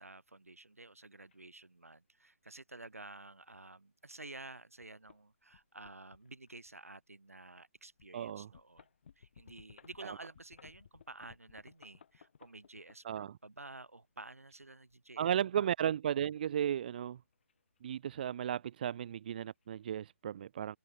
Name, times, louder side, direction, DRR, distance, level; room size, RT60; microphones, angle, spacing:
voice 1, 0.0-8.9 9.2-15.7, right 2 dB, 80° right, 7.1 m, -52 dB
sound 1, 1.3-1.4 2.2-2.5 3.0-3.1 3.5-3.6 4.3-4.5 4.8-5.2 5.5-6.8 7.3-7.4 8.0-13.5 14.4-15.3 17.0-18.1 18.4-18.7 18.9-19.0 19.3-19.7, left 7 dB, 50° left, 4.5 m, -61 dB
voice 2, 8.1-8.5 13.0-13.3 15.2-17.2 17.8-20.8, right 9 dB, 40° right, 0.7 m, -34 dB
figure-of-eight pair, 140°, 8 cm